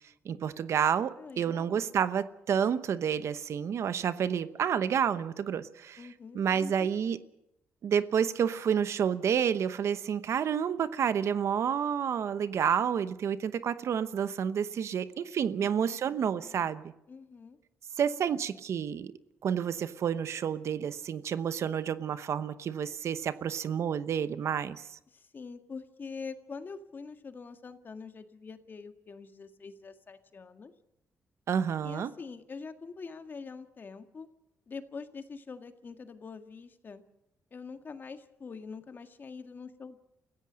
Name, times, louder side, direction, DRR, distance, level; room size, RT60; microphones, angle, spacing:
voice 1, 0.2-6.1 6.3-7.2 7.8-16.9 18.0-19.1 19.4-25.0 31.5-32.1, right 8 dB, 65° right, 1.0 m, -29 dB
voice 2, 1.2-1.8 6.0-6.7 15.6-16.7 17.1-17.6 25.1-30.7 31.8-34.3 34.7-37.0 37.5-40.0, left 5 dB, 40° left, 1.8 m, -45 dB
29.0 x 16.0 x 6.4 m
cardioid pair, 100°, 5 cm